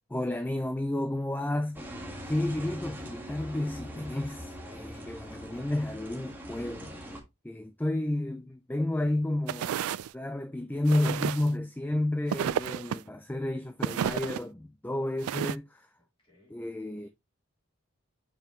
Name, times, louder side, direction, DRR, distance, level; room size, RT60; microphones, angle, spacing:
voice 1, 0.1-1.8 2.2-7.2 7.4-9.9 10.1-15.9 16.5-17.1, left 1 dB, 10° left, 0.3 m, -31 dB
sound 1, 1.7-7.2, equal, 10° right, 1.4 m, -42 dB
voice 2, 9.4-10.4 16.0-16.6 17.0-17.1, equal, 25° left, 3.7 m, -64 dB
sound 2, 9.5-10.1 10.9-11.5 12.3-13.0 13.8-14.4 15.2-15.6, right 9 dB, 80° right, 0.3 m, -31 dB
7.0 x 5.6 x 2.9 m
head